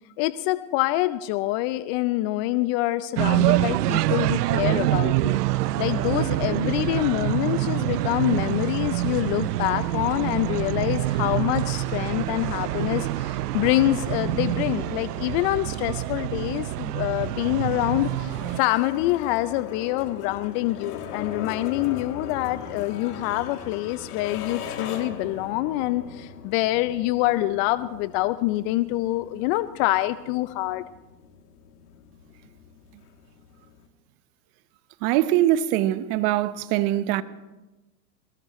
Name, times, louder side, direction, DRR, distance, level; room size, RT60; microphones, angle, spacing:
voice 1, 0.2-5.4 5.8-30.8, left 17 dB, 40° left, 0.6 m, -26 dB
sound 1, 3.2-18.6, right 15 dB, 70° right, 0.6 m, -26 dB
sound 2, 14.5-33.9, left 6 dB, 65° left, 2.9 m, -41 dB
voice 2, 35.0-37.2, right 13 dB, 45° right, 1.0 m, -22 dB
22.5 x 20.0 x 3.1 m
hypercardioid pair, 105°, 49 cm